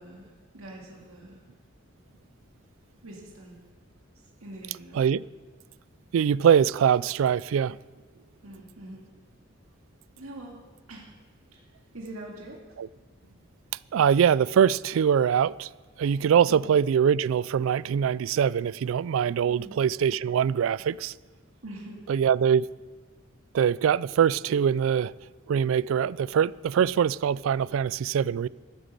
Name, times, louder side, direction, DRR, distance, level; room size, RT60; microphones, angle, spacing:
voice 1, 0.0-1.5 3.0-3.6 4.4-5.0 8.4-9.0 10.2-10.6 10.9-11.1 11.5-11.7 11.9-12.8 16.5-16.6 19.5-19.8 21.6-22.0, right 1 dB, 90° right, 2.1 m, -44 dB
voice 2, 6.1-7.8 12.8-12.9 13.9-15.7 16.0-21.1 22.1-22.7 23.5-25.1 25.5-28.5, right 8 dB, 70° right, 0.3 m, -23 dB
14.0 x 8.9 x 6.7 m
head